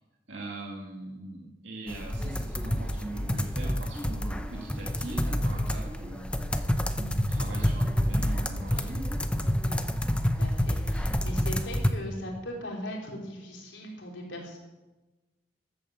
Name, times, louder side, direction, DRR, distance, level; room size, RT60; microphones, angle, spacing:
voice 1, 0.3-6.4 6.9-9.2, right 1 dB, 85° right, -3 dB, 2.3 m, -41 dB
sound 1, 1.9-11.9, equal, 5° left, 0.7 m, -28 dB
voice 2, 10.4-14.6, equal, 90° left, -1 dB, 3.5 m, -39 dB
13.5 x 8.9 x 7.0 m, 1.1 s
head